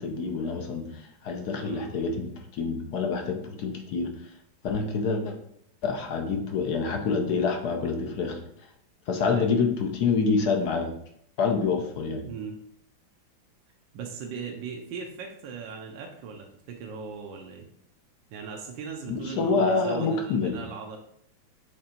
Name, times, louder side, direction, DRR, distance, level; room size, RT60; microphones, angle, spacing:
voice 1, 0.0-4.1 4.6-5.4 5.8-8.4 9.1-10.9 11.4-12.2 19.1-20.6, left 4 dB, 60° left, 4 dB, 1.2 m, -27 dB
voice 2, 9.2-9.5 12.2-12.6 13.9-17.7 18.3-21.0, right 6 dB, 70° right, 2 dB, 1.3 m, -38 dB
6.7 x 3.3 x 4.3 m, 0.69 s
omnidirectional pair, 2.2 m